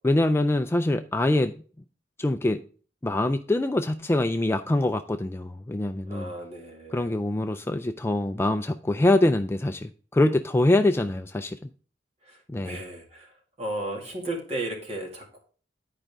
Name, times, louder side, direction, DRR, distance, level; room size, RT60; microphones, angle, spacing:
voice 1, 0.0-1.5 2.2-2.6 3.0-6.3 6.9-11.6 12.5-12.8, left 1 dB, 15° left, 0.3 m, -24 dB
voice 2, 6.1-7.1 12.2-15.4, right 1 dB, 35° right, 2.1 m, -35 dB
10.5 x 5.1 x 3.5 m
head